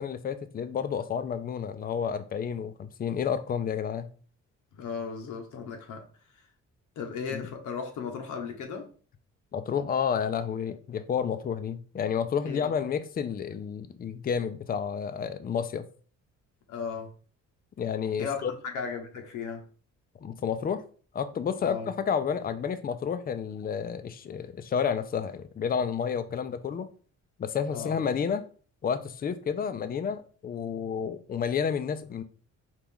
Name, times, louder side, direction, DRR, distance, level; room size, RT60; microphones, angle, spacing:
voice 1, 0.0-4.1 7.3-7.5 9.5-15.8 17.8-18.5 20.2-20.8 21.1-26.9 27.4-28.4 28.8-32.2, left 7 dB, 30° left, 0.4 m, -30 dB
voice 2, 4.7-6.1 6.3-6.5 7.0-8.9 12.4-12.7 16.7-17.1 18.2-19.6 21.6-21.9 27.7-28.0, left 6 dB, 75° left, 1.0 m, -36 dB
4.5 x 2.5 x 3.5 m
cardioid pair, 90°, 30 cm